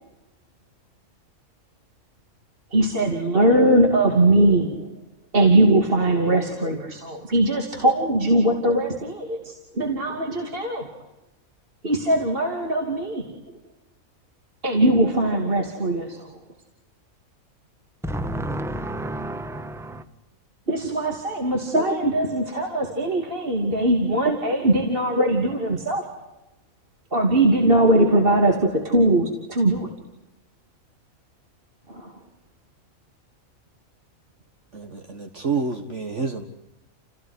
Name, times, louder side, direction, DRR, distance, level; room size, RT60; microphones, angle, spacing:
voice 1, 2.7-5.0 5.3-11.0 11.8-13.3 14.6-16.4 20.7-26.3 27.1-29.9 31.9-32.1, right 1 dB, 40° right, 3.1 m, -21 dB
voice 2, 18.0-20.0, right 1 dB, ahead, 1.3 m, -30 dB
voice 3, 34.7-36.5, right 4 dB, 55° right, 2.1 m, -28 dB
29.5 x 18.0 x 9.9 m
omnidirectional pair, 1.5 m